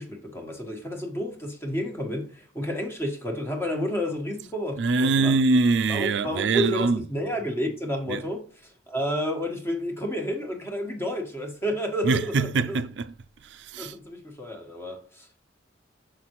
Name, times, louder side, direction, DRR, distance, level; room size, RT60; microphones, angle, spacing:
voice 1, 0.0-5.3 5.9-12.8 13.8-15.4, equal, 15° left, 1.3 m, -31 dB
voice 2, 4.8-7.1 8.1-8.2 12.0-13.1 13.4-14.0, right 3 dB, 65° right, 0.4 m, -23 dB
6.5 x 5.8 x 3.0 m
head